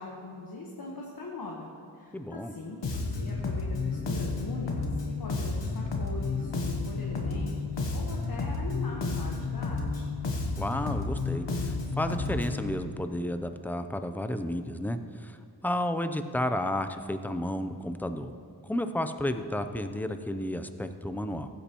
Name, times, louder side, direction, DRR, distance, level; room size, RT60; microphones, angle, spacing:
voice 1, 0.0-1.7 1.9-10.1, left 2 dB, 60° left, -2 dB, 1.3 m, -41 dB
voice 2, 2.1-2.5 10.5-15.4 15.6-18.3 18.6-21.5, left 1 dB, 5° left, 8 dB, 0.5 m, -32 dB
Bass guitar, 2.8-12.7, left 3 dB, 85° left, 1.2 m, -31 dB
15.0 x 8.4 x 3.0 m, 2.2 s
cardioid pair, 60°, 41 cm